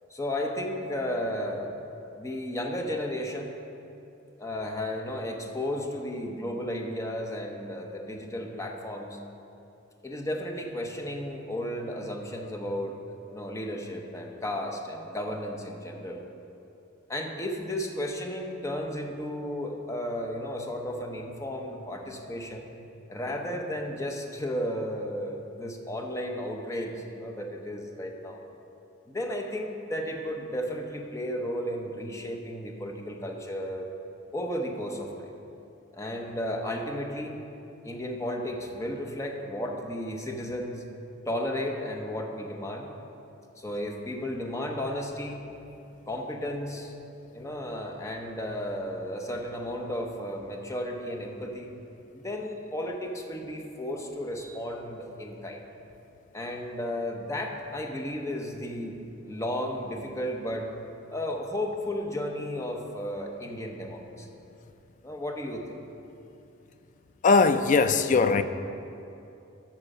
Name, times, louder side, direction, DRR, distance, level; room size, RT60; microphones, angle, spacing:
voice 1, 0.1-1.7 2.2-3.5 4.4-9.2 10.0-13.0 13.3-16.2 17.1-22.7 23.1-28.4 29.1-33.9 34.3-35.3 35.9-37.4 37.8-40.8 41.3-42.9 43.6-45.5 46.1-46.9 47.3-51.7 52.1-55.6 56.3-59.0 59.3-60.7 61.1-64.3 65.0-65.8, left 1 dB, 15° left, 0.8 m, -33 dB
voice 2, 67.2-68.4, left 4 dB, 40° left, 0.3 m, -20 dB
13.0 x 4.4 x 5.4 m
head